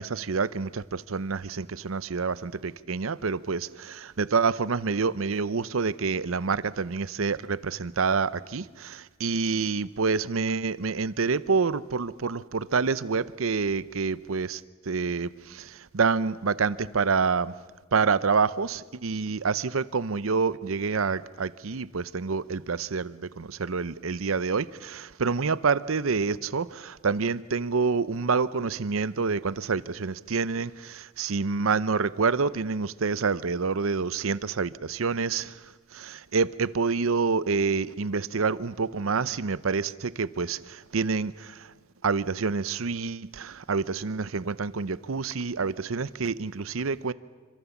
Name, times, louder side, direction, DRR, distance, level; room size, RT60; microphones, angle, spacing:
voice 1, 0.0-17.5 17.9-41.7 42.0-47.1, right 4 dB, 85° right, 0.7 m, -27 dB
27.0 x 25.5 x 7.2 m
head